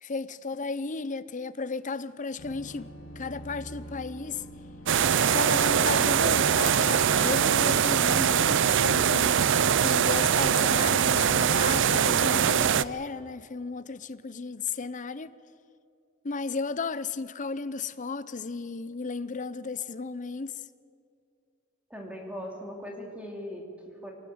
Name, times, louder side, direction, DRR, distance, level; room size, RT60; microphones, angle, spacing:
voice 1, 0.0-2.9 3.2-4.4 5.3-9.4 9.8-15.3 16.2-20.6, left 4 dB, 40° left, 0.7 m, -34 dB
sound 1, 2.4-12.6, equal, 85° left, 2.0 m, -43 dB
sound 2, 4.9-12.8, right 8 dB, 60° right, 0.5 m, -22 dB
voice 2, 21.9-24.1, equal, 5° right, 2.9 m, -39 dB
24.0 x 19.5 x 8.0 m
head